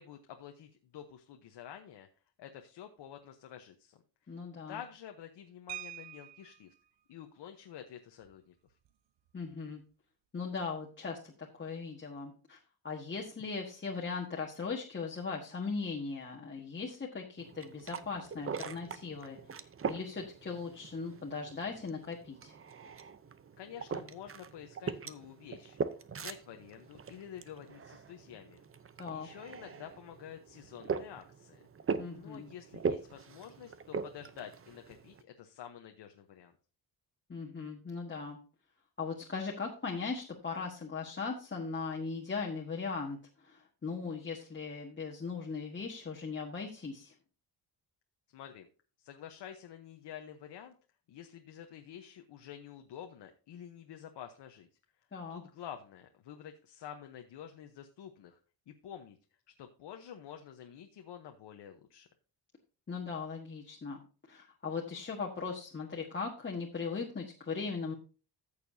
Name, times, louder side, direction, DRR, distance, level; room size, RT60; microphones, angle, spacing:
voice 1, 0.0-2.1 2.4-4.0 4.7-6.7 7.1-8.5 23.6-25.8 26.1-28.6 29.1-31.6 32.1-36.5 48.3-48.7 49.0-50.8 51.1-54.7 55.3-58.4 58.7-59.2 59.6-62.1, left 9 dB, 80° left, 5 dB, 1.1 m, -49 dB
voice 2, 4.3-4.8 9.3-9.8 10.3-12.6 12.8-22.5 29.0-29.3 32.0-32.5 37.3-38.4 39.0-47.1 55.1-55.4 62.9-64.0 64.3-67.9, left 4 dB, 25° left, -3 dB, 1.5 m, -39 dB
sound 1, 5.7-6.8 8.2-8.3 8.7-8.9 9.3-9.5, right 12 dB, 90° right, 0.9 m, -46 dB
sound 2, 17.4-35.2, right 5 dB, 30° right, 0.7 m, -41 dB
14.5 x 6.8 x 2.7 m, 0.36 s
cardioid pair, 125°, 42 cm